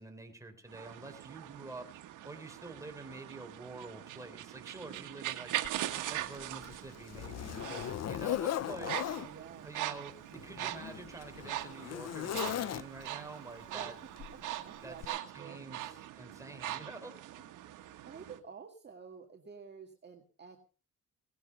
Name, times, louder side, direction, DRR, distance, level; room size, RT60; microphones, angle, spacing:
voice 1, 0.0-1.9 2.2-5.5 5.9-8.9 9.6-13.9 14.8-15.0 15.3-15.8 16.2-17.2, right 3 dB, 10° right, 4 dB, 3.8 m, -47 dB
sound 1, 0.7-18.4, right 13 dB, 85° right, 1.5 m, -42 dB
voice 2, 4.8-6.0 8.8-9.7 13.7-15.6 17.8-20.6, right 6 dB, 35° right, 3 dB, 1.9 m, -51 dB
Zipper (clothing), 5.6-5.8 6.3-9.3 10.2-13.2 14.2-14.4 15.0-15.1, left 11 dB, 60° left, 0.7 m, -38 dB
18.5 x 11.0 x 5.4 m, 0.38 s
cardioid pair, 90°, 30 cm